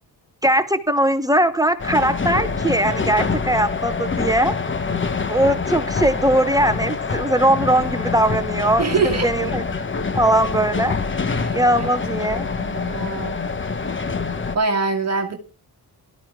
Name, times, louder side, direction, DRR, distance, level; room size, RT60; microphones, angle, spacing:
voice 1, 0.4-4.5 5.3-8.9 9.2-9.6 10.1-10.9 11.5-12.5, right 1 dB, 10° right, 10 dB, 1.0 m, -20 dB
sound 1, 1.8-14.6, left 4 dB, 30° left, 1.2 m, -25 dB
voice 2, 8.8-9.3 11.3-11.9 12.6-13.4 14.5-15.4, right 4 dB, 40° right, 2 dB, 1.8 m, -24 dB
17.5 x 13.0 x 3.6 m, 0.34 s
cardioid pair, 105°, 38 cm